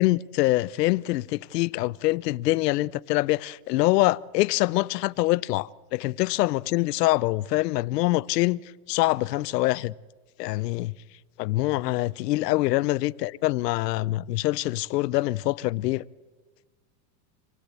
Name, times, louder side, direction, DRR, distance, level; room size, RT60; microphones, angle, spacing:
voice 1, 0.0-8.6 8.9-9.9 10.4-10.9 11.4-16.0, left 18 dB, 70° left, 0.7 m, -24 dB
26.0 x 17.0 x 8.3 m
supercardioid pair, 165°, 50 cm